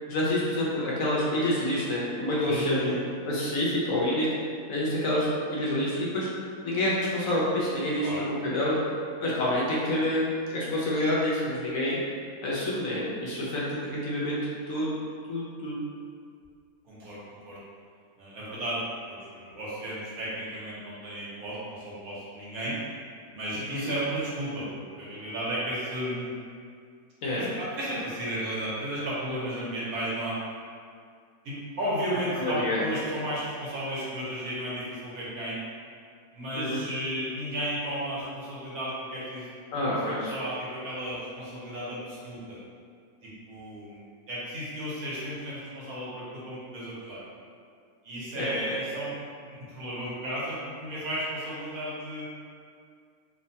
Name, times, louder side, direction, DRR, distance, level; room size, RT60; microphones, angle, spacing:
voice 1, 0.1-2.9 3.2-4.3 4.7-6.3 6.6-8.8 9.2-12.0 12.4-14.4 14.7-14.9 15.3-15.8 23.7-23.9 27.2-27.4 32.3-32.8 36.5-36.9 39.7-40.4 48.4-48.8, left 1 dB, 70° left, -6 dB, 0.9 m, -28 dB
voice 2, 2.4-3.0 8.0-8.2 16.8-17.6 18.2-22.8 23.3-26.3 27.4-30.4 31.4-35.6 36.3-39.5 39.9-42.6 43.2-47.2 48.0-49.1 49.5-52.3, equal, 75° right, -8 dB, 1.2 m, -34 dB
2.9 x 2.1 x 2.6 m, 2.2 s
omnidirectional pair, 1.6 m